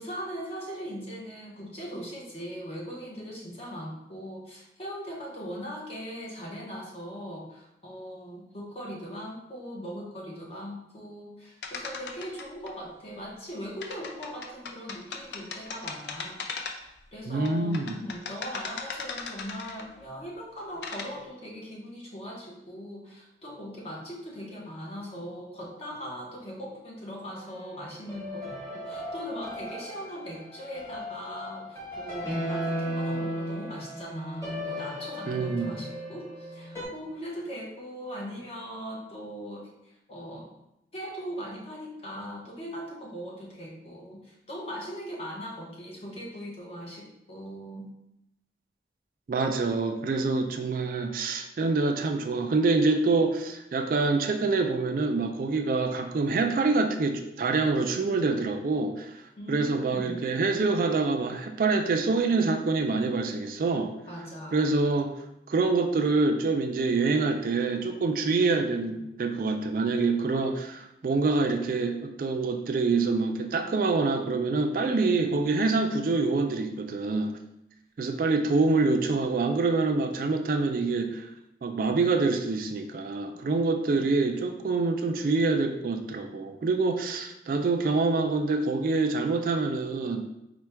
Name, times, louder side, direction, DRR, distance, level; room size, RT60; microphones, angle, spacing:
voice 1, 0.0-16.4 16.8-40.5 40.9-47.9 59.4-60.2 64.1-64.7, equal, 35° left, -2 dB, 0.9 m, -40 dB
sound 1, 11.6-12.7 13.8-17.0 17.5-20.0 20.6-21.1, left 4 dB, 75° left, 0.5 m, -38 dB
voice 2, 17.3-18.0 35.3-35.7 49.3-59.2 59.5-63.9 64.5-65.1 65.5-77.3 78.0-81.3 81.6-90.3, right 3 dB, 50° right, 5 dB, 0.3 m, -26 dB
sound 2, 27.3-36.8, equal, 15° left, 1.2 m, -36 dB
4.3 x 2.2 x 4.5 m, 0.86 s
head